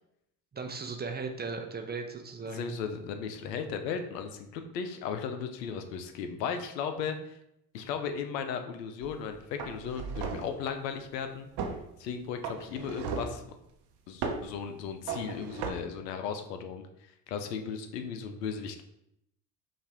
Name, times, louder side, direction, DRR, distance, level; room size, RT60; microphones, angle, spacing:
voice 1, 0.5-2.8, right 4 dB, 20° right, 4 dB, 0.6 m, -37 dB
voice 2, 2.5-7.4 7.7-11.5 12.0-13.4 14.1-16.9 17.3-18.8, left 6 dB, 85° left, 7 dB, 0.6 m, -36 dB
sound 1, 9.0-9.2 9.6-10.6 11.6-11.8 12.4-13.4 14.2-14.5 15.1-15.7, right 5 dB, 55° right, 0.8 m, -36 dB
5.4 x 2.5 x 3.4 m, 0.79 s
hypercardioid pair, 65°, 48 cm